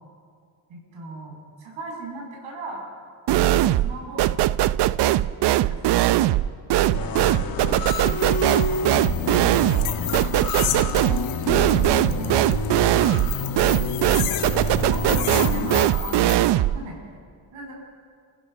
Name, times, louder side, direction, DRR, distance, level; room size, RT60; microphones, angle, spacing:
voice 1, 0.7-2.9 3.5-4.4 5.4-6.2 7.0-7.2 7.6-8.8 12.1-12.5 14.9-17.0 17.5-17.7, right 1 dB, 85° right, -1 dB, 7.8 m, -37 dB
voice 2, 3.3-3.6 7.4-7.5 14.7-14.9, equal, 10° right, -4 dB, 4.6 m, -43 dB
sound 1, 3.3-16.8, right 14 dB, 65° right, 0.6 m, -20 dB
sound 2, 6.9-15.9, left 4 dB, 50° left, 2.0 m, -29 dB
sound 3, 7.9-16.3, left 13 dB, 90° left, 1.7 m, -34 dB
30.0 x 16.5 x 6.0 m, 2.2 s
cardioid pair, 130°, 46 cm